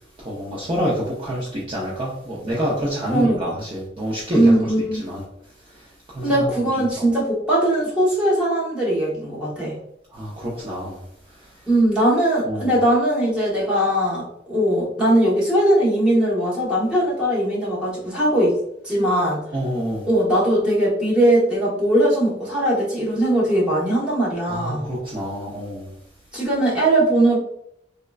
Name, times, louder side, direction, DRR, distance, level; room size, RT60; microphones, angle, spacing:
voice 1, 0.2-4.7 5.0-5.2 5.7-5.9 6.1-6.5 7.0-7.1 10.1-11.0 11.3-11.6 12.5-12.8 19.5-20.1 24.5-25.9, equal, 30° right, -6 dB, 0.6 m, -27 dB
voice 2, 3.1-3.6 4.3-5.0 6.2-9.8 11.7-18.6 18.8-19.4 20.0-24.9 26.3-27.4, right 1 dB, 5° right, -7 dB, 1.0 m, -20 dB
3.6 x 2.1 x 2.3 m, 0.73 s
head